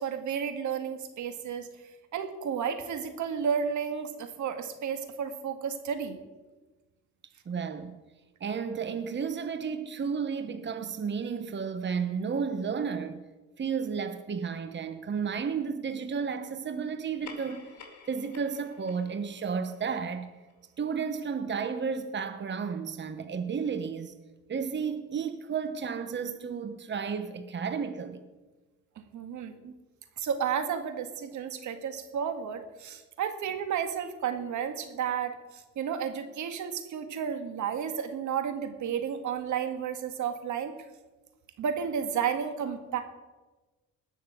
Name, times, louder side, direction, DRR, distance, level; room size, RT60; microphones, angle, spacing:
voice 1, 0.0-1.7 2.1-6.2 29.1-29.5 30.2-40.7 41.6-43.0, right 7 dB, 75° right, 8 dB, 1.9 m, -32 dB
voice 2, 7.5-8.0 8.4-13.2 13.6-17.7 18.1-20.3 20.8-24.1 24.5-28.2 29.6-29.7, right 6 dB, 35° right, 8 dB, 1.1 m, -32 dB
sound 1, 17.0-21.9, left 5 dB, 65° left, 2.5 m, -53 dB
18.5 x 6.6 x 8.0 m, 1.2 s
cardioid pair, 90°, 30 cm